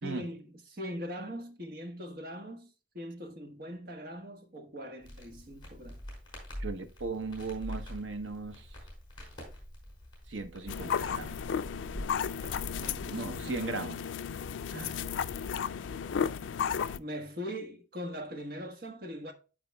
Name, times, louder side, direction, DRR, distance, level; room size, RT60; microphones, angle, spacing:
voice 1, 0.0-6.0 12.6-13.6 17.0-19.3, equal, 50° right, 1.4 m, -41 dB
Crackle, 5.0-13.6, equal, 25° left, 4.6 m, -45 dB
voice 2, 6.6-8.8 10.3-11.5 13.1-14.1 14.7-15.0, right 3 dB, 85° right, 1.0 m, -38 dB
sound 1, 10.7-17.0, left 7 dB, 80° left, 0.4 m, -34 dB
12.5 x 5.0 x 2.2 m
head